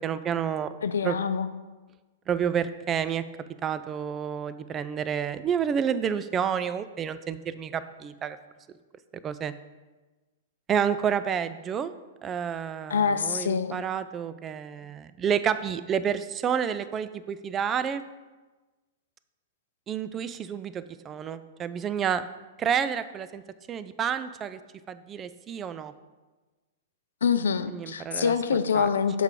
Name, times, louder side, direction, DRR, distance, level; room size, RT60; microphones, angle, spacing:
voice 1, 0.0-0.7 1.0-1.2 2.3-3.2 3.6-8.4 9.2-9.5 10.7-11.9 12.2-18.0 19.9-22.2 22.6-23.4 23.7-24.6 24.9-25.9 27.7-28.3 28.7-28.9, right 8 dB, 25° right, 13 dB, 0.4 m, -29 dB
voice 2, 0.8-1.5 12.9-13.8 27.2-29.2, left 6 dB, 75° left, 10 dB, 0.5 m, -25 dB
6.5 x 4.9 x 4.8 m, 1.2 s
hypercardioid pair, 110°, 0 cm